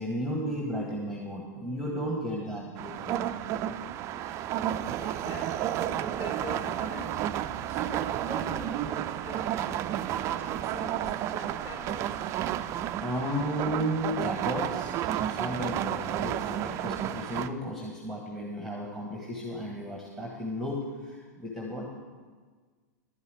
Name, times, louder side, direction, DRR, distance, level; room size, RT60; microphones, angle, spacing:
voice 1, 0.0-3.3 13.0-21.9, equal, ahead, -1 dB, 1.5 m, -34 dB
Bass guitar, 2.4-8.6, right 3 dB, 80° left, 4.0 m, -56 dB
sound 1, 2.8-17.5, right 11 dB, 30° right, 0.4 m, -31 dB
voice 2, 4.8-13.1, left 3 dB, 30° left, -1 dB, 3.7 m, -45 dB
11.5 x 5.5 x 8.0 m, 1.5 s
hypercardioid pair, 120°, 9 cm